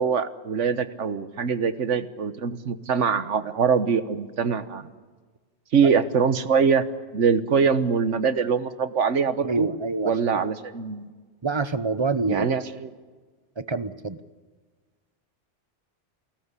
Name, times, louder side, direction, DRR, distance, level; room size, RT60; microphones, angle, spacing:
voice 1, 0.0-4.9 5.7-6.8 7.1-9.7 10.0-11.1 12.3-12.9, right 6 dB, 90° right, 12 dB, 1.5 m, -23 dB
voice 2, 9.4-10.4 11.4-12.5 13.6-14.2, right 3 dB, 25° right, 13 dB, 0.8 m, -27 dB
28.5 x 18.0 x 8.3 m, 1.4 s
omnidirectional pair, 1.2 m